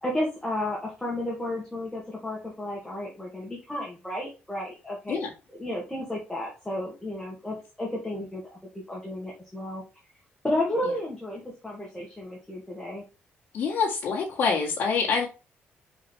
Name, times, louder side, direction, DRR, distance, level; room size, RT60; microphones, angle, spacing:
voice 1, 0.0-5.2 5.6-8.4 8.9-9.8 10.4-13.0, left 1 dB, 5° left, -4 dB, 2.1 m, -32 dB
voice 2, 13.5-15.3, left 5 dB, 50° left, -5 dB, 1.8 m, -26 dB
5.8 x 5.0 x 4.5 m, 0.31 s
cardioid pair, 170°, 4 cm